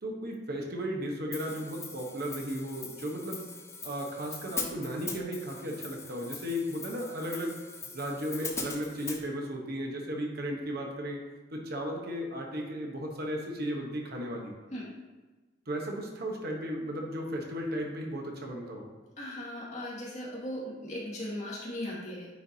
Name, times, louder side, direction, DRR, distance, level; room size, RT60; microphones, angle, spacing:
voice 1, 0.0-3.5 3.8-7.5 7.9-11.2 11.5-14.5 15.7-18.9, equal, 55° right, 0 dB, 1.0 m, -35 dB
Hi-hat, 1.3-9.2, left 4 dB, 15° left, 0.6 m, -41 dB
voice 2, 19.2-22.3, left 1 dB, 40° left, -6 dB, 2.0 m, -38 dB
9.3 x 4.5 x 2.7 m, 1.2 s
head